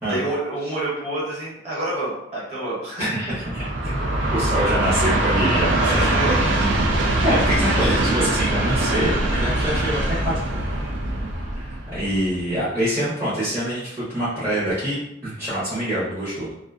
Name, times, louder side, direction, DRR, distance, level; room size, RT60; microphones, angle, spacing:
voice 1, 0.1-3.4 3.8-4.6 5.8-6.8 7.7-8.0, right 1 dB, 35° right, -8 dB, 1.0 m, -29 dB
voice 2, 3.0-3.6 4.3-6.1 7.2-10.8 11.5-16.5, equal, 10° right, -12 dB, 0.6 m, -25 dB
Train, 3.3-12.5, right 1 dB, 70° right, 0.4 m, -22 dB
2.5 x 2.1 x 2.4 m, 0.84 s
head